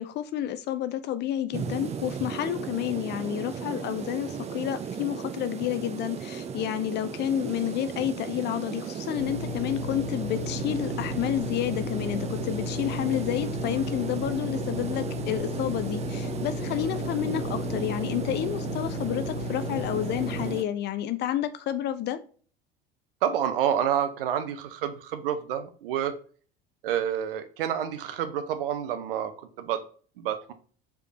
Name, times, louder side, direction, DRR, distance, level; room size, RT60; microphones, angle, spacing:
voice 1, 0.0-22.2, left 11 dB, 35° left, 0.5 m, -30 dB
sound 1, 1.5-20.6, right 7 dB, 20° right, 0.5 m, -35 dB
sound 2, 9.1-20.5, left 4 dB, 80° left, 1.2 m, -35 dB
voice 2, 23.2-26.1 26.8-29.8 30.2-30.5, right 9 dB, 70° right, 0.7 m, -28 dB
4.8 x 3.6 x 2.7 m
figure-of-eight pair, 70°, 29 cm